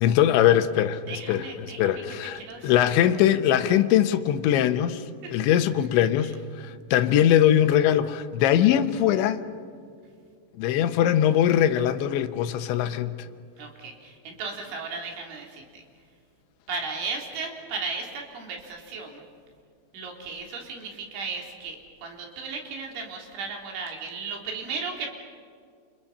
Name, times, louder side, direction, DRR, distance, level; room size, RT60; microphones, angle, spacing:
voice 1, 0.0-5.0 5.3-9.4 10.6-13.2, left 10 dB, 80° left, 3.3 m, -21 dB
voice 2, 1.1-2.0 2.4-2.9 5.2-5.3 13.6-15.8 16.7-19.2 19.9-25.1, right 4 dB, 85° right, 5.9 m, -35 dB
29.5 x 28.5 x 5.6 m
omnidirectional pair, 5.3 m